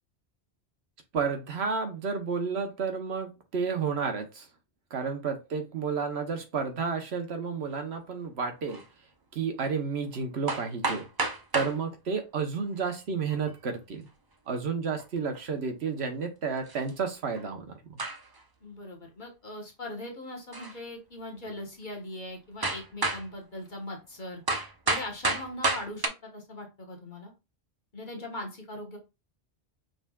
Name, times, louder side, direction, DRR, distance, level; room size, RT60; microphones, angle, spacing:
voice 1, 1.1-4.5 4.9-8.8 9.3-11.1 11.5-14.1 14.5-18.0, right 5 dB, 75° right, 6 dB, 1.2 m, -31 dB
sound 1, 8.7-8.8 10.1-10.2 10.5-11.8 13.1-13.6 15.0-15.1 15.3-15.4 16.7-16.9 17.3-17.5 18.0-18.4 20.5-20.8 21.4-21.5 22.6-23.3 24.5-26.1, right 3 dB, 30° right, 0.4 m, -30 dB
voice 2, 18.6-24.4 24.9-27.3 27.9-29.0, left 1 dB, 45° left, 1 dB, 1.3 m, -40 dB
5.4 x 3.4 x 2.3 m, 0.26 s
omnidirectional pair, 1.1 m